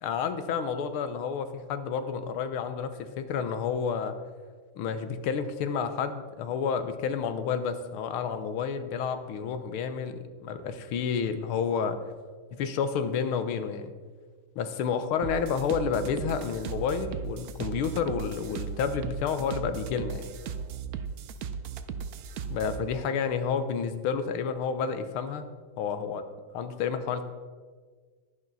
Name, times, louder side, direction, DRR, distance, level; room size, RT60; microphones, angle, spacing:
voice 1, 0.0-4.2 4.8-12.0 12.5-13.9 14.6-20.3 22.5-25.5 25.8-26.2 26.5-27.2, left 6 dB, 85° left, 10 dB, 1.7 m, -30 dB
sound 1, 15.2-22.8, right 6 dB, 80° right, 0.8 m, -37 dB
11.0 x 10.5 x 4.0 m, 1.5 s
omnidirectional pair, 2.3 m